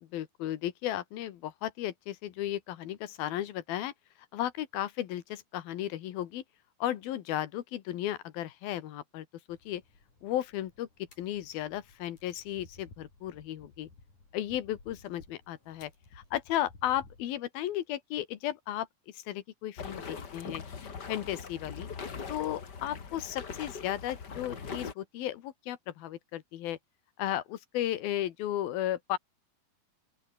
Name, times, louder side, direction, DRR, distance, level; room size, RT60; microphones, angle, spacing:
voice 1, 0.1-3.9 4.3-6.4 6.8-9.8 10.2-10.9 11.2-13.9 14.3-18.9 19.1-21.9 22.3-26.8 27.2-29.2, left 12 dB, 85° left, 3.4 m, -35 dB
sound 1, 9.5-17.4, left 3 dB, 55° left, 9.2 m, -57 dB
sound 2, 19.8-24.9, left 6 dB, 35° left, 2.2 m, -41 dB
open air
omnidirectional pair, 4.1 m